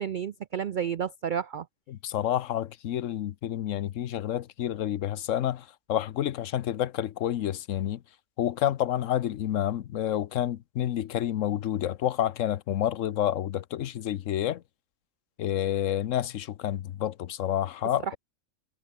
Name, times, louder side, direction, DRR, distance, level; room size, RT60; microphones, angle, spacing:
voice 1, 0.0-1.7 18.0-18.2, right 8 dB, 80° right, 0.4 m, -31 dB
voice 2, 1.9-8.0 8.4-14.6 15.4-18.0, left 11 dB, 70° left, 1.0 m, -29 dB
omnidirectional pair, 1.5 m